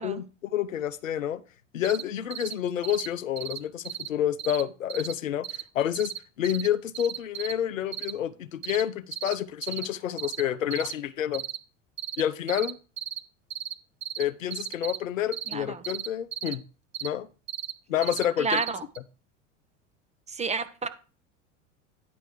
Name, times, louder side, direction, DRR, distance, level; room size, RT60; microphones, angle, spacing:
voice 1, 0.0-1.4 1.7-6.1 6.4-11.4 12.2-12.8 14.2-16.6 17.0-17.3 17.9-18.6, left 10 dB, 85° left, 0.6 m, -29 dB
sound 1, 1.8-2.0 2.3-2.5 2.8-3.1 3.4-3.6 3.9-4.1 4.4-4.6 4.9-5.1 5.4-5.6 6.0-6.2 6.4-6.7 6.9-7.5 7.9-8.1 8.6-8.8 9.1-9.3 9.6-9.9 10.2-10.4 10.7-10.9 11.3-11.6 12.0-12.2 12.5-12.7 13.0-13.2 13.5-13.7 14.0-14.2 14.5-15.0 15.3-15.5 15.8-16.5 16.9-17.1 17.5-17.7 18.0-18.3 18.5-18.7 19.0-19.1, right 11 dB, 85° right, 0.6 m, -34 dB
voice 2, 15.5-15.8 18.4-18.8 20.3-20.9, right 5 dB, 15° right, 0.9 m, -30 dB
9.4 x 3.2 x 6.5 m
hypercardioid pair, 80°, 39 cm